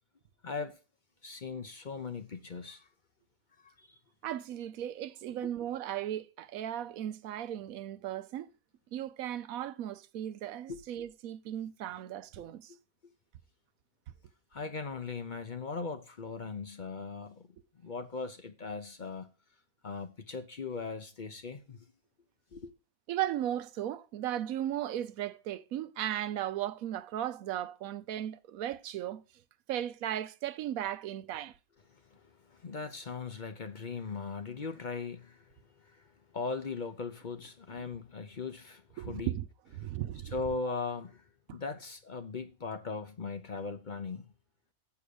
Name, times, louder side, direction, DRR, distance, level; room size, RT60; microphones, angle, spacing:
voice 1, 0.4-0.8 1.2-2.8 3.6-3.9 10.7-10.8 14.5-17.4 17.8-19.3 19.8-21.8 22.5-22.7 32.5-35.4 36.3-39.3 40.3-41.2 41.5-44.3, left 4 dB, 40° left, 0.8 m, -39 dB
voice 2, 4.2-8.5 8.9-12.7 23.1-29.2 29.7-31.5 37.8-37.9 39.0-39.5 39.7-40.7 41.5-41.6, right 11 dB, 85° right, 1.1 m, -36 dB
7.1 x 6.3 x 6.8 m
omnidirectional pair, 1.5 m